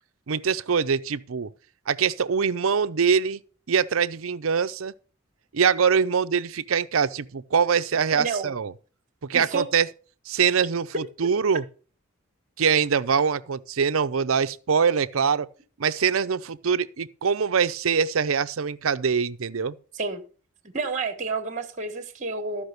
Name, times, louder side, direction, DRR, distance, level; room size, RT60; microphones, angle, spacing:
voice 1, 0.3-1.5 1.9-3.4 3.7-4.9 5.5-8.7 9.3-9.9 10.3-11.6 12.6-15.5 15.8-19.7, right 6 dB, 75° right, 0.6 m, -23 dB
voice 2, 8.1-8.5 9.3-9.7 19.9-20.2 20.6-22.6, right 4 dB, 35° right, 1.3 m, -30 dB
13.5 x 5.1 x 6.5 m
head